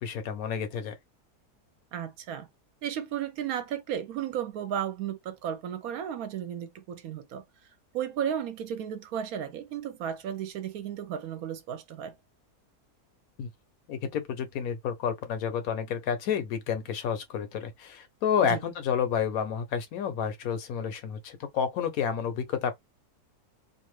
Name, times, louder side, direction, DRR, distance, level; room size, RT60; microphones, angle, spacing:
voice 1, 0.0-0.9 13.4-13.5 13.9-22.7, left 7 dB, 70° left, 1.0 m, -30 dB
voice 2, 1.9-2.5 2.8-7.4 7.9-12.1 18.5-18.6, right 9 dB, 70° right, 1.0 m, -34 dB
2.6 x 2.4 x 3.0 m
omnidirectional pair, 1.7 m